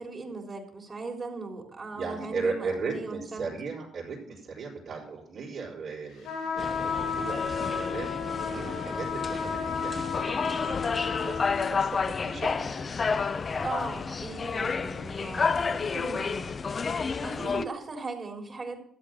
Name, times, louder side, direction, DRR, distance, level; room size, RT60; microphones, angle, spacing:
voice 1, 0.0-3.5 13.6-16.6 17.0-18.8, right 3 dB, 35° right, 2 dB, 3.6 m, -38 dB
voice 2, 1.9-12.9, right 4 dB, 60° right, -7 dB, 4.5 m, -37 dB
sound 1, 6.2-11.7, left 5 dB, 85° left, 5.1 m, -33 dB
sound 2, 6.6-17.6, left 5 dB, 40° left, 0.7 m, -30 dB
13.0 x 8.3 x 6.4 m, 0.64 s
cardioid pair, 90°, 0 cm